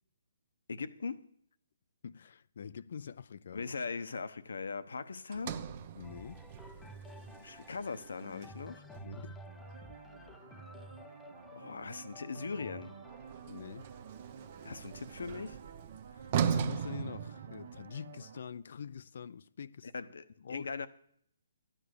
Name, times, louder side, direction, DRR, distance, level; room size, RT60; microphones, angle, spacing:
voice 1, 0.7-1.3 3.5-5.6 7.4-8.8 11.5-13.0 14.6-15.6 19.9-20.9, left 4 dB, 80° left, 1.0 m, -40 dB
voice 2, 2.0-3.7 6.0-6.5 9.0-9.5 10.7-10.8 13.5-14.0 16.1-19.9 20.4-20.7, left 7 dB, 60° left, 0.4 m, -45 dB
Sliding door, 5.3-9.6 13.0-18.0, right 8 dB, 35° right, 0.7 m, -39 dB
sound 1, 6.0-15.8 16.5-16.6, left 1 dB, 5° left, 0.5 m, -53 dB
sound 2, 9.5-18.4, right 6 dB, 55° right, 1.3 m, -52 dB
13.0 x 10.0 x 6.8 m
hypercardioid pair, 165°, 0 cm